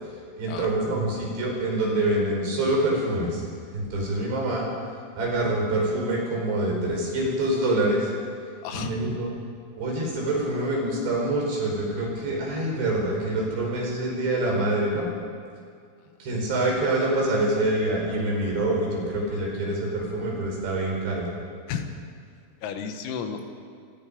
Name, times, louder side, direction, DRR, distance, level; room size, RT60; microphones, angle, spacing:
voice 1, 0.3-3.4 3.7-4.7 5.2-8.1 8.7-9.3 9.8-15.1 16.2-21.3, right 1 dB, 55° right, -2 dB, 6.6 m, -26 dB
voice 2, 22.6-23.5, left 7 dB, 85° left, 5 dB, 4.2 m, -32 dB
26.5 x 19.5 x 5.2 m, 2.2 s
omnidirectional pair, 5.9 m